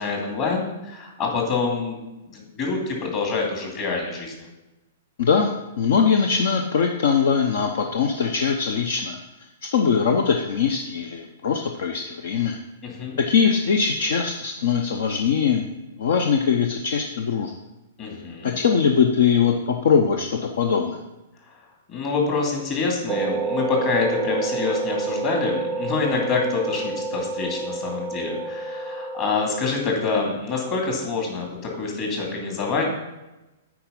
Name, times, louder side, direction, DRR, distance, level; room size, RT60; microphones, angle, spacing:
voice 1, 0.0-2.0 2.3-4.5 12.8-13.2 18.0-18.6 21.5-21.6 21.9-32.8, left 4 dB, 35° left, 0 dB, 2.5 m, -26 dB
voice 2, 5.2-5.5 5.8-12.6 13.2-15.7 16.0-17.5 18.4-21.0, left 6 dB, 60° left, 4 dB, 0.7 m, -21 dB
sound 1, 23.1-29.6, right 4 dB, 25° right, 0.4 m, -28 dB
8.7 x 4.8 x 5.4 m, 1.0 s
figure-of-eight pair, 110°, 0 cm